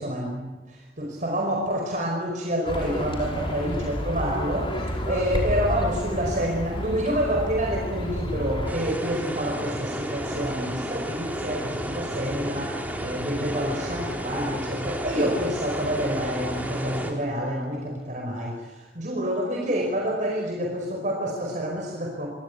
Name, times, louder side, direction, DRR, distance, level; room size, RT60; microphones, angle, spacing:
voice 1, 0.0-22.3, equal, 45° right, 1 dB, 5.1 m, -28 dB
Livestock farm animals working animals, 2.7-8.7, equal, 30° left, 5.5 m, -30 dB
sound 1, 8.7-17.1, equal, 10° right, 4.0 m, -32 dB
27.5 x 24.0 x 8.4 m, 1.1 s
head